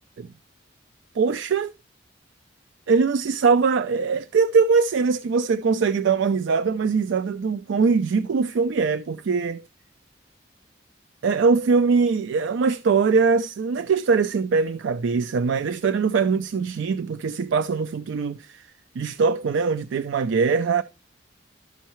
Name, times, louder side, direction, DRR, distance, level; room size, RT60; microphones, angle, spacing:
voice 1, 1.2-1.7 2.9-9.6 11.2-18.7 19.0-20.8, right 5 dB, 75° right, 0.4 m, -22 dB
12.5 x 5.5 x 3.0 m
head